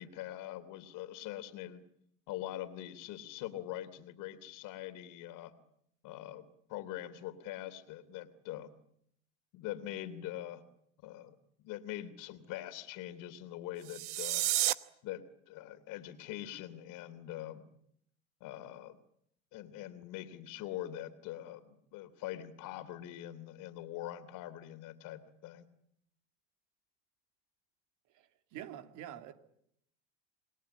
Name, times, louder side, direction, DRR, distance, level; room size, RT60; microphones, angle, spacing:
voice 1, 0.0-1.8 2.3-5.5 6.0-8.7 9.5-10.6 11.0-14.4 15.0-17.6 18.4-19.0 19.5-25.7, left 13 dB, 60° left, 3.1 m, -43 dB
sound 1, 13.8-14.7, right 16 dB, 80° right, 1.1 m, -31 dB
voice 2, 28.1-29.3, right 11 dB, 55° right, 2.9 m, -46 dB
28.0 x 21.5 x 8.8 m
hypercardioid pair, 80°, 35 cm